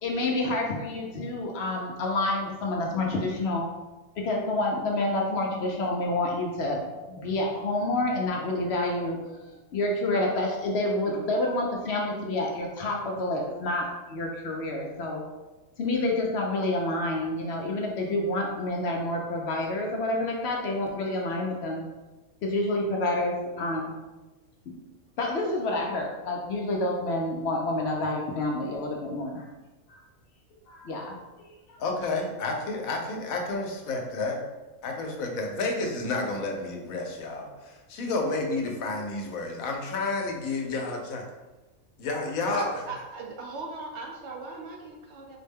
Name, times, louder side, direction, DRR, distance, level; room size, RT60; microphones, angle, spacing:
voice 1, 0.0-3.7 4.2-15.2 15.8-21.8 22.4-23.9 24.7-24.8 25.2-29.5 30.7-31.8, left 2 dB, 60° left, 0 dB, 0.7 m, -28 dB
voice 2, 31.8-34.4 34.8-41.3 42.0-42.7, left 3 dB, 85° left, 2 dB, 1.1 m, -30 dB
voice 3, 42.5-45.4, right 3 dB, 65° right, 0 dB, 0.8 m, -39 dB
4.1 x 2.1 x 3.4 m, 1.1 s
omnidirectional pair, 1.4 m